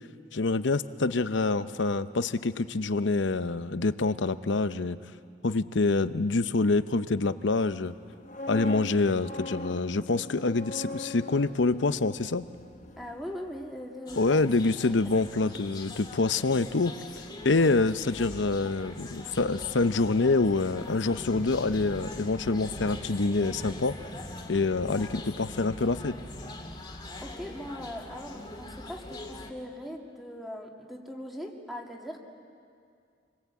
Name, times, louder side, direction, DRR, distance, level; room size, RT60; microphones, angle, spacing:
voice 1, 0.3-5.0 5.4-7.9 8.5-12.4 14.1-16.9 17.4-23.9 24.5-26.2, left 3 dB, 70° left, 12 dB, 0.8 m, -26 dB
sound 1, 8.0-14.0 14.2-14.5, left 1 dB, 40° left, 1.2 m, -41 dB
voice 2, 13.0-14.4 14.9-15.0 27.2-32.2, equal, ahead, 1 dB, 2.3 m, -40 dB
sound 2, 14.1-29.5, left 1 dB, 25° left, 2.0 m, -42 dB
28.0 x 21.5 x 8.4 m, 2.3 s
head